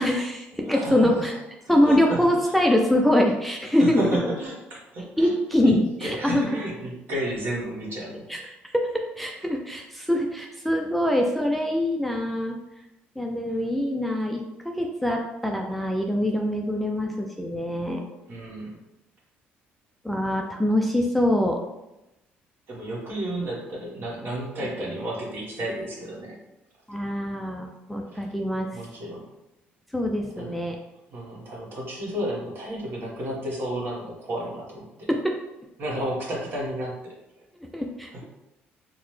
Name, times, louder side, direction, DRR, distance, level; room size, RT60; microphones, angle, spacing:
voice 1, 0.0-1.3 1.7-4.0 5.2-6.6 8.3-12.6 13.2-18.0 20.0-21.6 24.6-24.7 26.9-28.7 29.9-30.8 35.1-35.3 37.6-38.2, left 1 dB, ahead, 1 dB, 0.3 m, -24 dB
voice 2, 0.7-1.3 1.8-2.5 3.8-5.3 5.6-5.7 6.0-8.2 18.3-18.8 22.7-26.4 28.1-28.2 28.7-29.2 30.4-30.6 31.1-35.1 35.8-37.1 38.1-38.2, right 1 dB, 55° right, -3 dB, 1.2 m, -32 dB
3.8 x 2.1 x 3.1 m, 0.95 s
cardioid pair, 95°, 4 cm